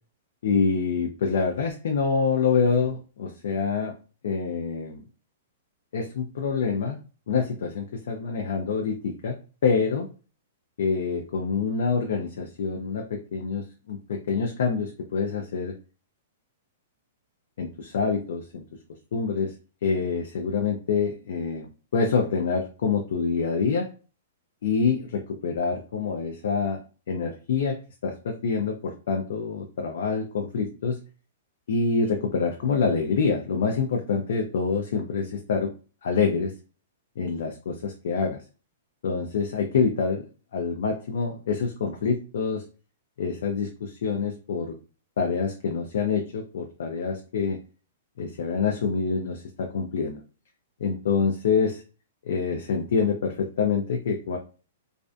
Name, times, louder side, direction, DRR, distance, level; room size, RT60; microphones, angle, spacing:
voice 1, 0.4-3.9 4.2-5.0 5.9-7.0 7.3-9.3 9.6-10.1 10.8-15.7 17.6-18.6 19.1-19.5 19.8-21.7 21.9-23.9 24.6-26.8 27.1-27.8 28.0-31.0 31.7-35.7 36.0-36.5 37.2-38.4 39.0-40.3 40.5-42.6 43.2-44.7 45.2-47.6 48.2-50.2 50.8-51.8 52.2-54.4, left 5 dB, 65° left, 2 dB, 0.4 m, -26 dB
2.5 x 2.2 x 2.4 m, 0.36 s
hypercardioid pair, 170°, 0 cm